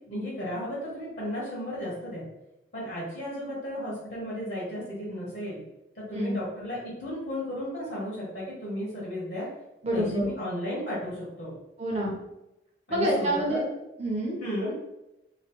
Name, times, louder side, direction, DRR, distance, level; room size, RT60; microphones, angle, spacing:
voice 1, 0.0-2.3 2.7-5.6 5.9-9.5 9.9-11.6 12.9-13.6 14.4-14.7, equal, 60° left, -6 dB, 1.0 m, -34 dB
voice 2, 9.8-10.3 11.8-12.1 12.9-13.7 14.0-14.7, equal, 35° right, -2 dB, 0.7 m, -28 dB
3.0 x 2.4 x 2.9 m, 0.92 s
head